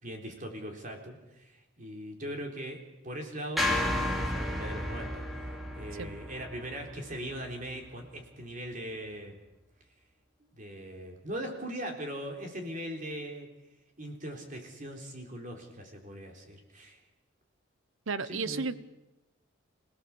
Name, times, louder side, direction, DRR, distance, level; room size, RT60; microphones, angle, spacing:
voice 1, 0.0-3.7 4.0-5.3 5.7-9.4 10.5-13.5 14.0-17.0 18.2-18.7, equal, 40° right, 2 dB, 3.7 m, -40 dB
sound 1, 3.6-7.9, left 1 dB, ahead, 2.9 m, -33 dB
voice 2, 18.1-18.7, right 4 dB, 70° right, 15 dB, 1.0 m, -33 dB
27.5 x 17.0 x 7.2 m, 1.0 s
head